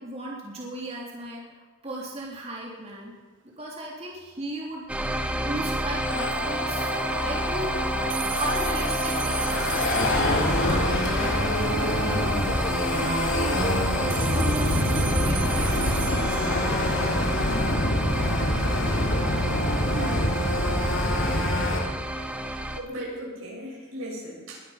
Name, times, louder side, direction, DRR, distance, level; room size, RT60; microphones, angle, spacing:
voice 1, 0.0-3.1 3.6-6.9 7.2-7.9 8.4-12.4 12.9-13.7 13.9-16.9 21.2-21.3, right 1 dB, 30° right, -3 dB, 3.1 m, -36 dB
sound 1, 4.9-22.8, right 1 dB, 5° right, 1.0 m, -30 dB
sound 2, 6.0-21.8, left 1 dB, 65° left, 3.4 m, -26 dB
sound 3, 8.1-11.5 14.1-17.5, right 8 dB, 65° right, 1.6 m, -36 dB
voice 2, 19.9-20.4 22.8-24.6, equal, 90° right, -3 dB, 6.6 m, -36 dB
21.0 x 11.5 x 5.7 m, 1.3 s
head